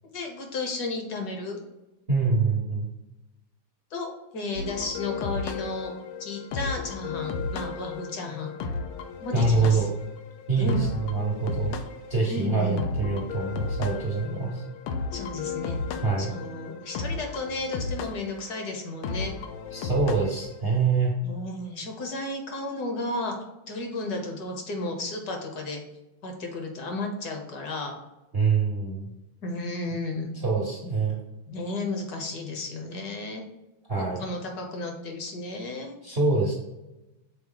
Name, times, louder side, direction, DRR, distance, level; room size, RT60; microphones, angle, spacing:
voice 1, 0.1-1.6 3.9-5.9 6.2-8.5 9.2-9.9 10.6-10.8 12.3-12.8 15.1-15.8 16.2-19.3 21.2-23.3 23.7-25.8 26.2-27.9 29.4-30.3 31.5-33.4 34.2-36.0, left 2 dB, 55° left, 3 dB, 1.3 m, -33 dB
voice 2, 2.1-2.9 9.3-9.9 10.5-11.8 12.1-14.6 16.0-16.3 19.7-21.1 28.3-29.1 30.4-31.2 33.9-34.3 36.0-36.5, right 4 dB, 55° right, -2 dB, 0.7 m, -25 dB
sound 1, 4.6-20.6, left 4 dB, 85° left, 1.6 m, -34 dB
6.2 x 4.0 x 3.8 m, 1.0 s
omnidirectional pair, 2.4 m